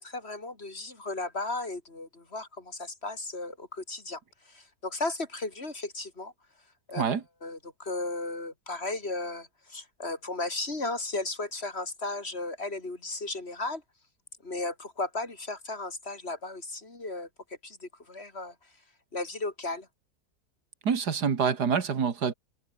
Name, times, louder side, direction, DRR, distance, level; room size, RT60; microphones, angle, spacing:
voice 1, 0.0-4.2 4.5-6.3 6.9-7.0 7.4-13.8 14.4-17.3 17.6-18.5 19.1-19.9, left 2 dB, 40° left, 3.4 m, -35 dB
voice 2, 20.8-22.3, right 6 dB, 85° right, 2.5 m, -26 dB
omnidirectional pair, 1.7 m